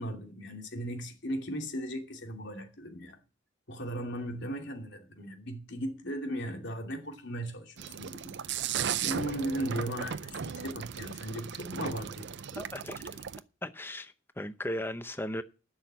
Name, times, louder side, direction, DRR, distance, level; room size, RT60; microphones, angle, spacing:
voice 1, 0.0-3.2 3.7-8.3 9.0-12.6, equal, 55° left, 2.7 m, -37 dB
sound 1, 7.8-13.4, right 8 dB, 55° right, 0.6 m, -36 dB
voice 2, 12.6-13.2 13.6-15.4, left 1 dB, 10° left, 0.6 m, -37 dB
11.5 x 6.3 x 8.1 m
head